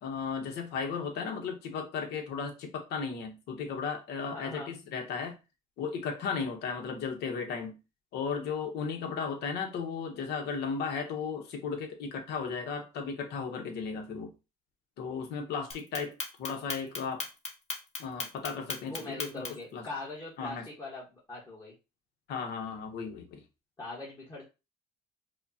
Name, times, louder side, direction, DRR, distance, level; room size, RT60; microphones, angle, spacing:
voice 1, 0.0-5.4 5.8-7.8 8.1-14.3 15.0-17.3 18.0-19.5 19.7-19.8 20.4-20.7 22.3-23.4, left 5 dB, 75° left, 1.0 m, -35 dB
voice 2, 4.3-4.7 18.9-21.7 23.8-24.4, left 2 dB, 20° left, 1.2 m, -42 dB
Clock, 15.7-19.7, left 4 dB, 40° left, 0.9 m, -36 dB
4.9 x 2.2 x 2.7 m
cardioid pair, 110°, 17 cm